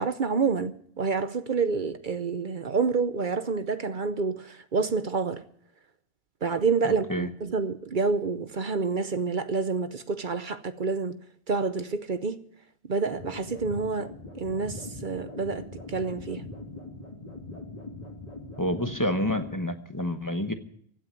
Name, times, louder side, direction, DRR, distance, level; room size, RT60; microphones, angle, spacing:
voice 1, 0.0-5.4 6.4-11.2 11.5-12.4 12.9-16.4, right 4 dB, 55° right, 0.9 m, -28 dB
voice 2, 6.8-7.3 18.6-20.5, left 1 dB, 20° left, 1.0 m, -28 dB
sound 1, 13.1-19.6, left 2 dB, 35° left, 2.9 m, -41 dB
16.0 x 9.1 x 9.4 m
omnidirectional pair, 1.0 m